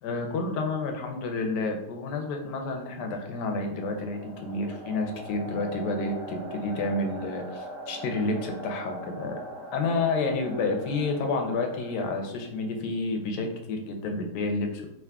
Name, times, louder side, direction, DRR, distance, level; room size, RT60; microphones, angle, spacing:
voice 1, 0.0-9.4 9.7-14.9, left 3 dB, 90° left, 3 dB, 1.3 m, -30 dB
sound 1, 2.0-12.8, right 1 dB, 80° right, 1.4 m, -42 dB
3.7 x 2.8 x 3.5 m, 0.84 s
omnidirectional pair, 1.8 m